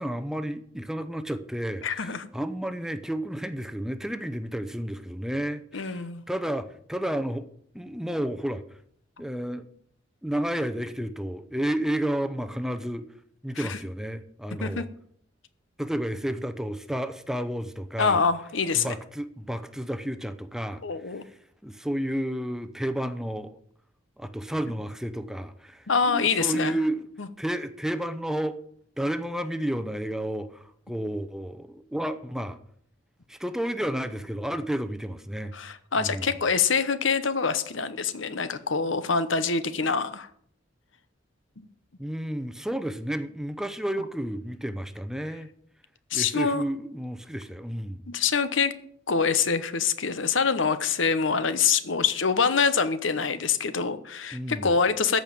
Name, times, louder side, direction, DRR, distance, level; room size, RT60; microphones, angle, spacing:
voice 1, 0.0-7.5 7.7-8.6 9.2-9.7 10.2-13.1 13.4-14.9 15.8-18.2 18.7-21.3 21.6-23.6 24.2-27.1 27.4-28.6 29.0-32.6 33.3-35.5 36.0-36.3 42.0-45.5 46.1-48.0 54.3-54.7, right 1 dB, 5° right, 0.7 m, -31 dB
voice 2, 1.8-2.3 5.7-6.2 13.6-13.8 14.6-14.9 18.0-18.9 20.8-21.2 25.9-26.8 27.2-27.3 35.5-40.3 46.1-46.6 48.1-48.7 49.1-55.2, left 5 dB, 75° left, 1.0 m, -25 dB
14.5 x 5.3 x 9.1 m
head